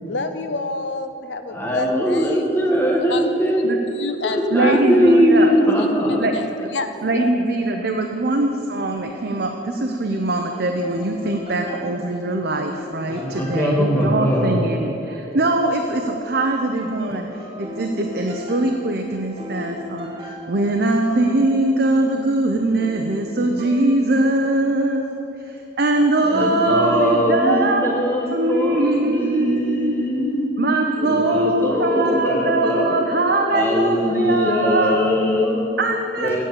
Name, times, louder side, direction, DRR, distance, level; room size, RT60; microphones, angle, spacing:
voice 1, 0.1-2.5 3.1-3.2 3.9-5.2 5.8-7.3, left 3 dB, 75° left, 8 dB, 0.8 m, -29 dB
voice 2, 1.5-3.6 4.2-6.2 13.1-14.6 26.2-30.5 30.9-33.0 33.5-35.6 36.2-36.4, equal, 15° left, -1 dB, 1.3 m, -20 dB
voice 3, 4.5-5.5 6.2-6.3 7.0-17.3 17.6-25.0 25.4-27.9 28.3-30.0 30.6-35.0 35.8-36.4, right 2 dB, 60° right, 3 dB, 0.7 m, -21 dB
sound 1, 10.8-24.5, left 1 dB, 30° right, 1.5 m, -38 dB
8.4 x 8.3 x 8.9 m, 2.8 s
head